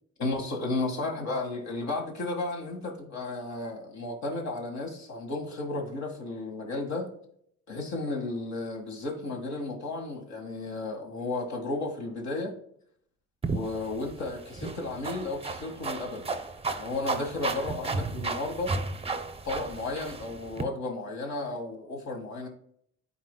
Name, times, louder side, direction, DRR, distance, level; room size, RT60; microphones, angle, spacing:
voice 1, 0.2-7.1 7.7-12.5 13.5-16.3 16.7-18.7 19.4-22.5, left 2 dB, 65° left, 1 dB, 1.9 m, -33 dB
sound 1, 13.4-20.6, right 3 dB, 20° right, 0.6 m, -34 dB
11.5 x 4.2 x 2.3 m, 0.67 s
cardioid pair, 90°, 30 cm